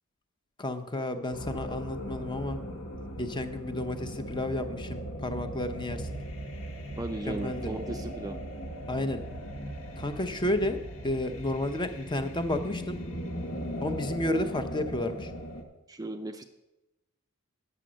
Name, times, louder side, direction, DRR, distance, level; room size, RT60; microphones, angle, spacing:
voice 1, 0.6-2.6 3.2-6.1 7.3-7.7 8.9-9.2 10.0-10.8 11.0-13.0 13.8-15.3, left 1 dB, 20° left, 8 dB, 0.6 m, -31 dB
sound 1, 1.3-15.6, equal, 65° left, 1.3 m, -38 dB
voice 2, 7.0-8.4 15.9-16.4, right 2 dB, 15° right, 7 dB, 0.4 m, -36 dB
8.8 x 6.8 x 6.2 m, 1.0 s
head